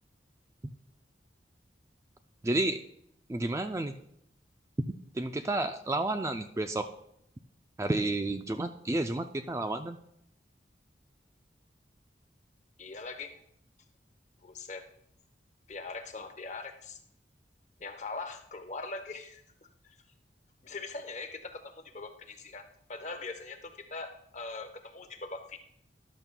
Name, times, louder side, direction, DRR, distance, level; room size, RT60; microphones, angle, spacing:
voice 1, 2.4-2.8 3.3-3.9 5.1-6.9 7.8-10.0, right 2 dB, 15° right, 8 dB, 0.3 m, -31 dB
voice 2, 12.8-13.4 14.4-14.9 15.7-17.0 17.8-19.4 19.8-19.9 20.6-25.6, left 3 dB, 40° left, 7 dB, 0.9 m, -41 dB
13.5 x 11.0 x 2.2 m, 0.73 s
head